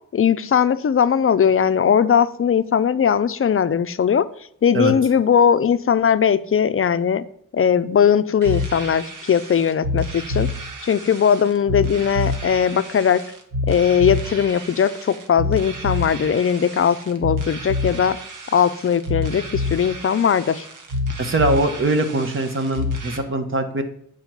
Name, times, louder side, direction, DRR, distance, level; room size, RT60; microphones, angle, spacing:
voice 1, 0.1-4.3 4.6-7.2 7.5-10.5 10.8-13.2 13.7-18.2 18.5-20.7, left 7 dB, 45° left, 14 dB, 0.5 m, -19 dB
sound 1, 8.4-23.2, left 2 dB, 85° right, 1.6 m, -28 dB
voice 2, 21.2-23.8, right 2 dB, 40° right, 7 dB, 1.3 m, -22 dB
8.7 x 4.9 x 5.9 m, 0.67 s
wide cardioid pair, 110°, 31 cm